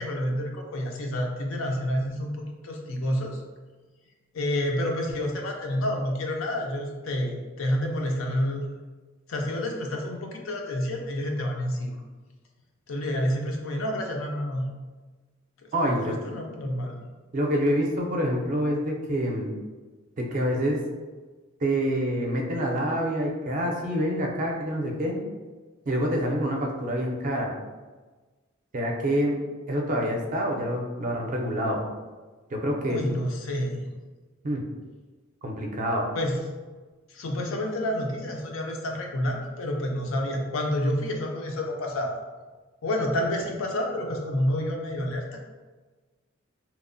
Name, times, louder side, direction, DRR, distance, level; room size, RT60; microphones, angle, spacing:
voice 1, 0.0-3.4 4.3-8.6 9.3-12.0 12.9-14.7 15.8-17.0 32.9-33.9 36.1-36.4 37.1-42.2 42.8-45.5, left 1 dB, 75° left, 1 dB, 0.5 m, -29 dB
voice 2, 15.7-16.2 17.3-19.5 20.2-20.8 21.6-25.2 25.9-27.5 28.7-29.4 29.7-31.8 32.5-33.0 34.4-34.6 35.4-36.1, equal, 40° right, 0 dB, 0.4 m, -26 dB
2.9 x 2.0 x 2.5 m, 1.3 s
head